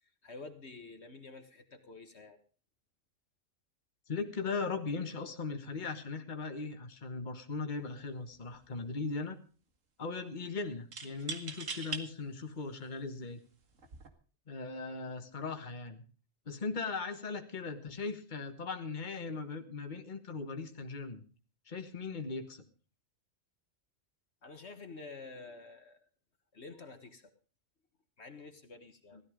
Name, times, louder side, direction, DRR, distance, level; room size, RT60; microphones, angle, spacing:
voice 1, 0.0-2.4 24.4-26.0 26.5-27.3 28.2-29.2, left 3 dB, 60° left, 7 dB, 1.7 m, -49 dB
voice 2, 4.1-9.4 10.0-13.4 14.5-16.0 16.4-21.2 21.6-22.6 29.1-29.2, left 4 dB, 40° left, 6 dB, 1.6 m, -38 dB
sound 1, 7.8-8.0 8.3-9.0 10.9-12.0 12.8-12.9 13.8-14.1, right 4 dB, 90° right, 2.2 m, -41 dB
16.5 x 13.0 x 5.1 m, 0.39 s
omnidirectional pair, 1.3 m